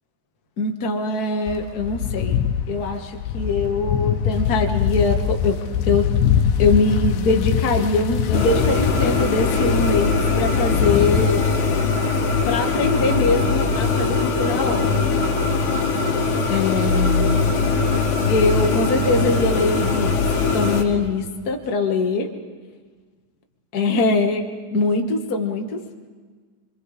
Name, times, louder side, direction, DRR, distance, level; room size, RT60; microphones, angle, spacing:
voice 1, 0.6-2.4 2.7-5.6 5.9-6.1 6.6-11.4 12.4-15.1 16.5-17.4 18.3-20.2 20.5-22.3 23.7-24.4 24.7-25.8, left 3 dB, 45° left, 3 dB, 1.3 m, -22 dB
sound 1, 1.5-11.2, left 8 dB, 90° left, 2.5 m, -23 dB
sound 2, 8.3-20.8, left 4 dB, 65° left, 3.2 m, -21 dB
25.5 x 24.0 x 5.0 m, 1.5 s
omnidirectional pair, 3.9 m